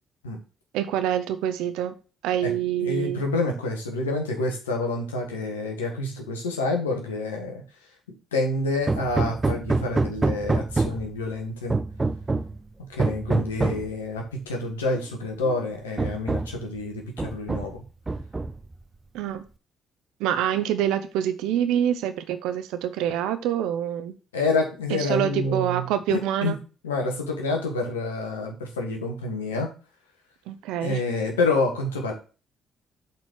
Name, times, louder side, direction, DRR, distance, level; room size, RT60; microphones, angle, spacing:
voice 1, 0.7-1.9 2.2-3.2 19.1-19.4 20.2-24.1 24.9-26.6 30.5-31.0, right 10 dB, 70° right, 10 dB, 0.8 m, -26 dB
voice 2, 2.8-7.6 8.3-11.8 12.9-17.8 24.3-26.5 26.8-29.7 30.8-32.1, left 2 dB, 85° left, 2 dB, 1.6 m, -28 dB
Hammer, 8.9-11.2 11.7-12.6 13.0-13.9 14.9-15.0 15.5-15.6 16.0-16.6 17.2-17.8 18.1-18.7, right 3 dB, 25° right, 0.5 m, -26 dB
7.5 x 4.4 x 6.1 m, 0.35 s
hypercardioid pair, 45°, 0 cm